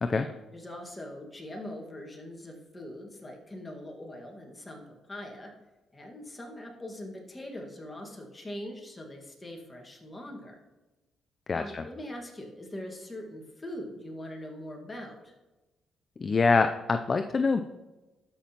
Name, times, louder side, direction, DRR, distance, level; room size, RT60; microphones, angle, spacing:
voice 1, 0.1-5.5 5.9-10.5 11.5-15.3, left 1 dB, 20° left, 0 dB, 1.6 m, -42 dB
voice 2, 11.5-11.9 16.2-17.6, left 4 dB, 35° left, 8 dB, 0.3 m, -25 dB
12.5 x 5.8 x 2.9 m, 1.1 s
cardioid pair, 90°, 0 cm